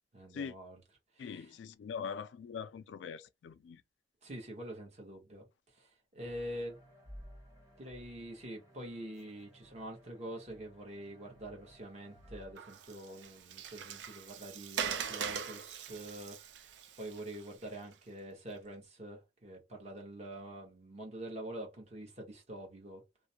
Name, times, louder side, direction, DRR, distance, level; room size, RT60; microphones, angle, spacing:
voice 1, 0.1-0.8 1.3-1.4 4.2-5.5 5.7-6.8 7.8-16.7 17.0-23.0, right 1 dB, 40° right, 1.0 m, -45 dB
voice 2, 1.2-3.8, left 6 dB, 85° left, 0.3 m, -42 dB
sound 1, 6.2-12.5, equal, 20° right, 1.4 m, -56 dB
Water, 12.6-17.9, right 7 dB, 80° right, 0.4 m, -42 dB
2.5 x 2.0 x 2.7 m
head